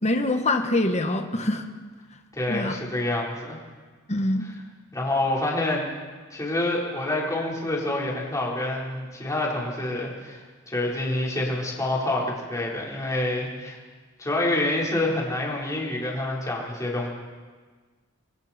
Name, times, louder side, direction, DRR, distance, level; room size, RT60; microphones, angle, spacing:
voice 1, 0.0-1.6 2.5-2.7 4.1-4.5, left 1 dB, 35° left, 5 dB, 1.5 m, -24 dB
voice 2, 2.3-3.6 4.4-4.5 4.9-5.9 6.3-13.8 14.2-17.1, left 1 dB, 15° left, -4 dB, 4.5 m, -27 dB
28.5 x 23.0 x 4.5 m, 1.4 s
head